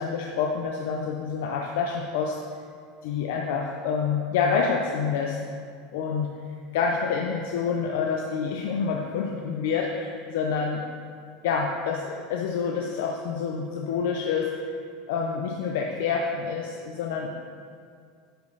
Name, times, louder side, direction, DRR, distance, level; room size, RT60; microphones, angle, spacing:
voice 1, 0.0-2.4 3.0-5.4 5.9-6.3 6.7-10.8 11.4-14.7 15.1-17.4, left 5 dB, 70° left, 0 dB, 0.6 m, -27 dB
10.0 x 5.2 x 4.0 m, 2.2 s
supercardioid pair, 175°, 0 cm